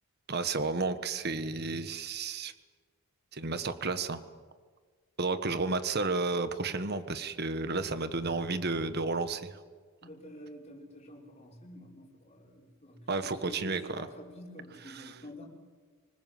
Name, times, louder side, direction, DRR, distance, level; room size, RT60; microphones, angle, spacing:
voice 1, 0.3-2.5 3.3-4.2 5.2-9.6 13.1-14.1 14.9-15.1, right 3 dB, 45° right, 11 dB, 1.4 m, -32 dB
voice 2, 10.0-15.4, left 1 dB, 30° left, -3 dB, 5.3 m, -49 dB
25.5 x 20.0 x 7.8 m, 1.5 s
head